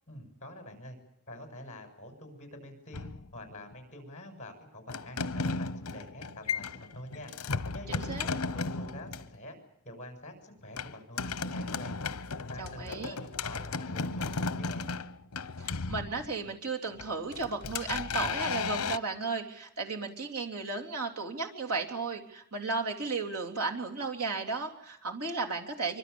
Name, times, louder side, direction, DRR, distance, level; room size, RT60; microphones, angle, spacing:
voice 1, 0.1-1.0 1.3-3.1 3.3-6.7 6.9-7.3 7.7-9.6 9.8-11.9 12.5-14.9, left 1 dB, 35° left, 5 dB, 7.4 m, -46 dB
sound 1, 2.9-3.7 4.9-9.3 10.8-16.5 17.0-19.0, left 4 dB, 75° left, 0.9 m, -35 dB
voice 2, 7.9-8.3 12.6-13.2 15.6-26.0, right 4 dB, 90° right, 1 dB, 3.5 m, -34 dB
25.0 x 25.0 x 7.2 m, 0.73 s
head